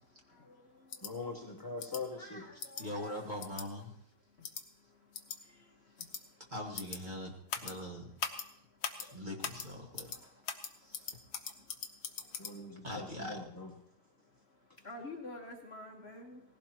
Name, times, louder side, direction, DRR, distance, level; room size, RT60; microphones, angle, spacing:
sound 1, 0.9-1.1 1.8-2.0 2.6-2.8 3.4-3.7 4.4-4.6 5.1-5.4 6.0-6.2 6.8-7.0 7.5-7.7 8.2-8.5 8.8-9.1 9.4-9.7 10.0-10.2 10.5-12.5, left 7 dB, 65° left, 1.5 m, -40 dB
voice 1, 1.0-2.6 12.4-13.7, left 3 dB, 15° left, 0 dB, 1.0 m, -42 dB
voice 2, 2.2-3.2 14.9-16.4, left 1 dB, 35° left, 1 dB, 1.6 m, -47 dB
voice 3, 2.8-3.9 6.5-8.1 9.0-10.1 10.8-11.2 12.8-13.4, left 1 dB, 25° right, -1 dB, 1.9 m, -42 dB
18.5 x 16.0 x 3.0 m, 0.71 s
omnidirectional pair, 1.9 m